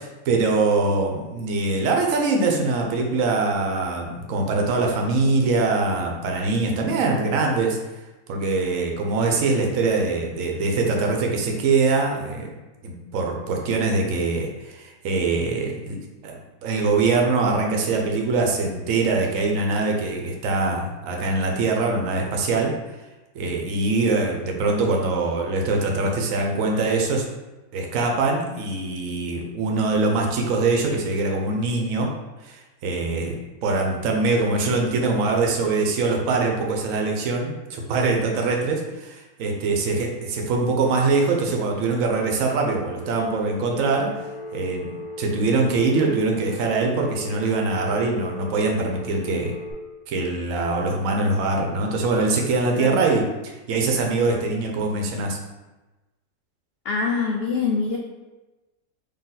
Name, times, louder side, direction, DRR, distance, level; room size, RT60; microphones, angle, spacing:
voice 1, 0.0-7.8 8.3-12.5 12.8-16.0 16.2-22.7 23.3-27.2 27.7-32.1 32.4-33.4 33.6-44.2 44.5-44.9 45.2-49.5 50.1-55.4, right 3 dB, 65° right, 1 dB, 1.1 m, -23 dB
Telephone, 43.0-49.7, left 2 dB, 25° left, 1.7 m, -37 dB
voice 2, 56.8-58.0, left 4 dB, 80° left, 0 dB, 0.5 m, -24 dB
4.1 x 3.0 x 4.0 m, 1.1 s
omnidirectional pair, 1.6 m